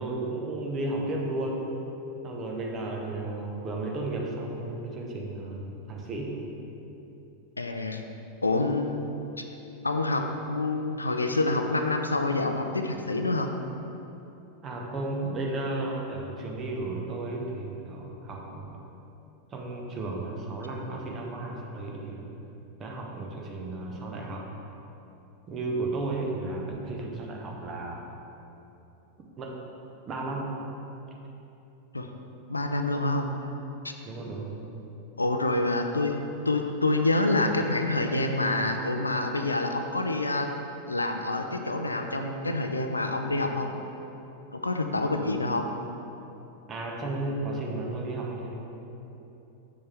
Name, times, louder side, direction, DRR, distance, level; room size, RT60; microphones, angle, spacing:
voice 1, 0.0-1.8 2.2-6.4 14.6-18.8 19.5-22.2 22.8-24.5 25.5-28.1 29.4-29.7 30.1-30.6 34.0-34.5 46.7-48.5, right 2 dB, 30° right, 0 dB, 1.1 m, -33 dB
voice 2, 7.6-8.0 8.4-9.1 9.8-13.5 31.9-32.1 32.5-33.3 33.8-33.9 35.2-36.2 36.5-40.5 40.8-43.7 44.5-45.7, left 2 dB, 80° left, 5 dB, 0.4 m, -27 dB
7.5 x 6.8 x 3.4 m, 3.0 s
figure-of-eight pair, 90°, 0 cm